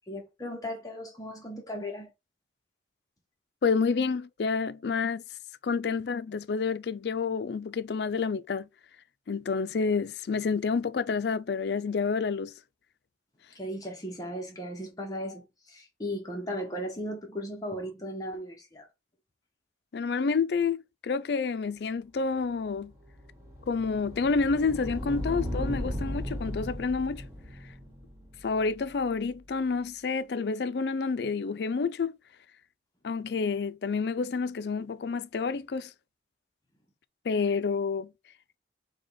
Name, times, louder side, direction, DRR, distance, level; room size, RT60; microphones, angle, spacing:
voice 1, 0.1-2.1 13.5-18.9, equal, 20° left, 0.8 m, -36 dB
voice 2, 3.6-5.2 5.6-8.7 9.3-12.5 19.9-22.9 23.7-27.2 28.4-32.1 33.0-35.9 37.3-38.1, left 5 dB, 70° left, 0.4 m, -29 dB
sound 1, 22.7-29.6, equal, 15° right, 1.5 m, -37 dB
5.0 x 2.3 x 4.1 m
head